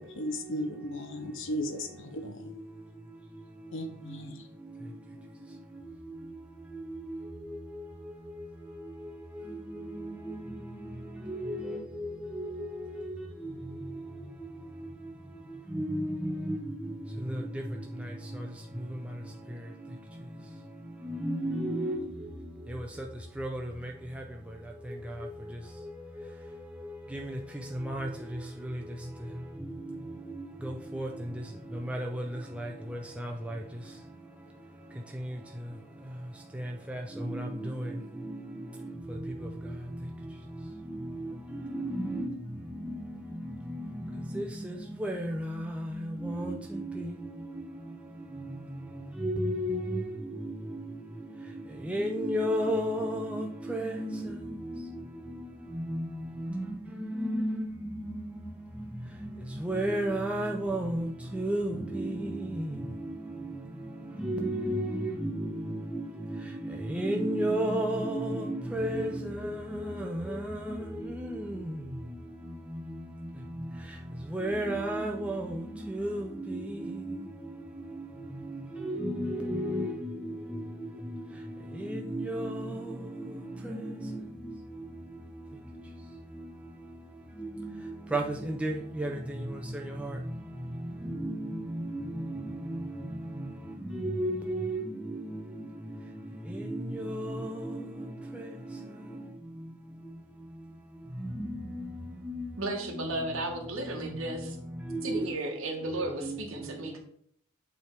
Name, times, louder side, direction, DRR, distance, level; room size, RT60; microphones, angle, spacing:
voice 1, 0.0-2.6 3.7-4.4, left 1 dB, 60° left, 0.9 m, -36 dB
voice 2, 6.7-7.2 7.4-7.8 8.4-8.5 9.4-10.7 11.3-14.5 15.0-15.1 15.7-18.5 21.0-22.1 22.7-22.9 23.4-24.2 24.9-25.3 25.8-25.9 26.2-26.3 26.8-27.4 27.7-28.8 29.9-30.0 30.3-31.3 31.7-32.2 32.5-33.6 35.2-35.4 36.5-38.4 39.0-39.8 40.9-42.4 42.7-43.1 43.4-44.7 45.0-47.2 48.4-48.5 49.2-50.1 50.4-50.8 51.8-55.4 55.7-56.1 56.4-58.4 58.8-58.9 59.2-63.1 63.3-63.5 63.8-63.9 64.2-71.9 74.3-77.2 78.4-81.2 81.7-84.5 84.8-84.9 87.4-90.2 91.0-92.8 93.8-95.6 96.5-98.1 98.3-98.5 101.2-102.0 102.2-102.5 102.9-103.1 104.9-105.3 106.2-106.4, right 1 dB, 5° right, 0.4 m, -34 dB
voice 3, 102.6-104.6 105.0-107.0, right 2 dB, 65° right, 1.4 m, -34 dB
8.2 x 3.4 x 4.6 m
head